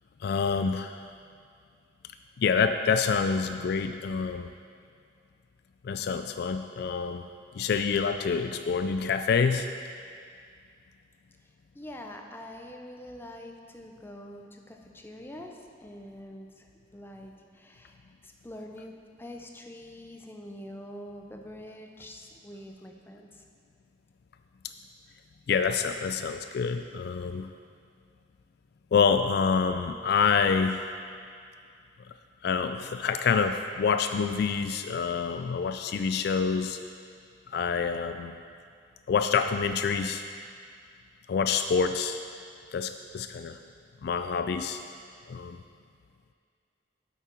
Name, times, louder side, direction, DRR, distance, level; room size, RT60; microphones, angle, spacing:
voice 1, 0.2-1.0 2.4-4.5 5.8-7.2 7.5-9.7 25.5-27.5 28.9-30.8 32.4-36.8 37.5-38.4 39.1-40.2 41.3-42.2 42.7-43.6 44.0-44.8 45.3-45.6, left 5 dB, 60° left, 8 dB, 0.3 m, -27 dB
voice 2, 11.7-23.4, left 1 dB, 10° left, 2 dB, 0.6 m, -45 dB
8.6 x 8.2 x 4.4 m, 2.2 s
head